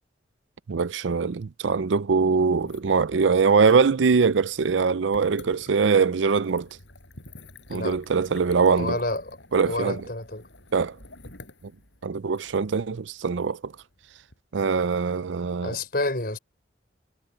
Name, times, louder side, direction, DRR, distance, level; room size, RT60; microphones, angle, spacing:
voice 1, 0.7-6.7 7.7-9.0 9.5-10.1 10.7-11.0 12.0-13.7 14.5-15.8, right 5 dB, 85° right, 0.5 m, -22 dB
sound 1, 2.5-14.4, left 2 dB, 80° left, 7.9 m, -50 dB
voice 2, 8.8-9.2 9.7-10.4 15.6-16.4, left 2 dB, 55° left, 5.1 m, -28 dB
head